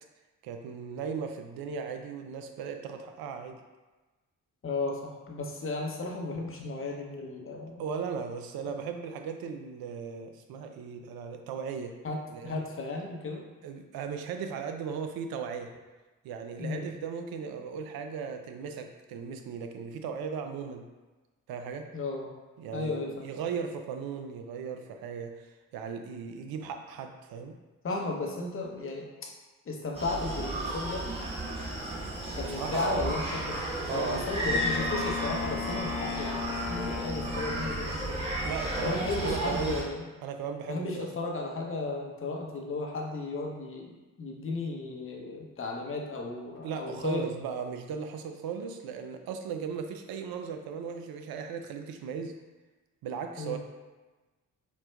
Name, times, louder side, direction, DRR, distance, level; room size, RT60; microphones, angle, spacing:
voice 1, 0.4-3.6 7.8-12.0 12.3-12.6 13.6-15.7 16.2-20.9 21.5-21.9 22.6-27.5 32.5-33.1 33.9-34.6 38.4-39.8 40.2-41.1 46.6-52.3 53.0-53.6, right 6 dB, 60° right, 6 dB, 0.5 m, -37 dB
voice 2, 4.6-7.8 8.7-8.8 12.0-13.4 16.6-16.9 21.9-22.3 22.7-23.3 27.8-29.3 29.7-31.1 32.3-33.6 33.9-38.3 38.8-40.1 40.7-47.3 53.4-53.6, left 3 dB, 30° left, 0 dB, 0.7 m, -34 dB
Screaming, 29.9-39.8, right 1 dB, 15° right, 1.0 m, -33 dB
Wind instrument woodwind instrument, 34.5-38.0, left 6 dB, 85° left, 0.9 m, -36 dB
4.2 x 2.2 x 2.2 m, 1.2 s
hypercardioid pair, 45°, 41 cm